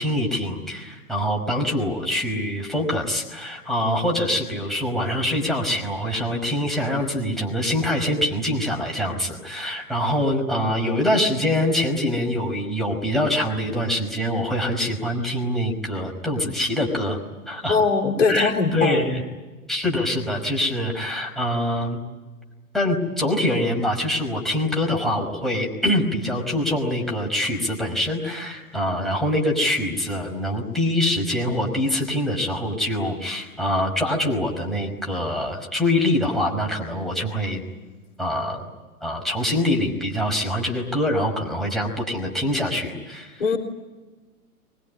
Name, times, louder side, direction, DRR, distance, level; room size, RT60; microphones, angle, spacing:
voice 1, 0.0-17.2 17.5-17.8 18.3-19.2 19.7-22.0 22.7-37.6 38.2-38.7 39.0-43.5, left 1 dB, ahead, -1 dB, 5.3 m, -24 dB
voice 2, 17.7-19.0 43.4-43.6, left 4 dB, 55° left, 2 dB, 4.1 m, -20 dB
23.5 x 23.0 x 10.0 m, 1.2 s
figure-of-eight pair, 115°, 44 cm